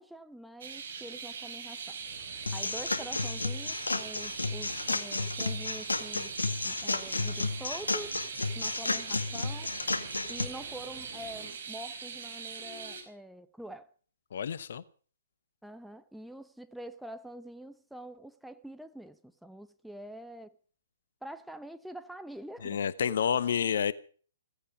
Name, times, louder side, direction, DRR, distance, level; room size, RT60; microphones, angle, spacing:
voice 1, 0.0-2.0 2.5-6.3 6.6-8.2 8.5-9.7 10.3-13.9 15.6-20.5 21.2-22.8, right 1 dB, ahead, 0.8 m, -45 dB
sound 1, 0.6-13.0, right 6 dB, 55° right, 5.1 m, -42 dB
sound 2, 2.0-11.5, right 4 dB, 30° right, 7.9 m, -53 dB
sound 3, 2.5-10.4, left 3 dB, 75° left, 1.9 m, -32 dB
voice 2, 14.3-14.8 22.6-23.9, left 8 dB, 55° left, 1.1 m, -29 dB
17.0 x 15.5 x 5.0 m
figure-of-eight pair, 120°, 0 cm